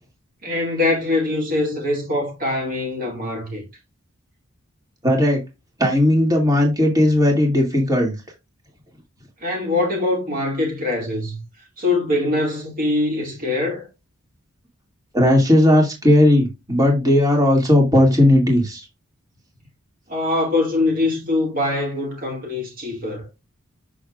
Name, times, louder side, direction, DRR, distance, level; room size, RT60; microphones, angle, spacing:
voice 1, 0.4-3.6 9.4-11.4 11.8-13.9 20.1-23.3, left 2 dB, 40° right, 2.1 m, -23 dB
voice 2, 5.0-5.4 5.8-8.1 15.1-18.9, left 1 dB, 15° right, 2.4 m, -16 dB
7.4 x 6.5 x 2.5 m
head